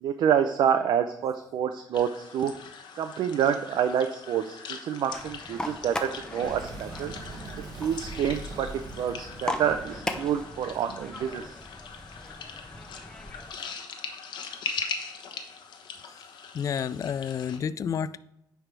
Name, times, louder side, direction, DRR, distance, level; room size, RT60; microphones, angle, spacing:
voice 1, 0.0-2.5 3.0-7.1 7.8-8.7 9.0-11.5, right 8 dB, 80° right, 0.5 m, -27 dB
sound 1, 1.9-17.6, left 5 dB, 80° left, 1.0 m, -41 dB
sound 2, 5.1-13.5, left 1 dB, 10° left, 0.8 m, -39 dB
Boom, 6.4-11.6, right 3 dB, 65° right, 1.1 m, -42 dB
voice 2, 16.5-18.2, left 7 dB, 45° left, 0.3 m, -30 dB
9.8 x 3.5 x 4.6 m
cardioid pair, 105°, 8 cm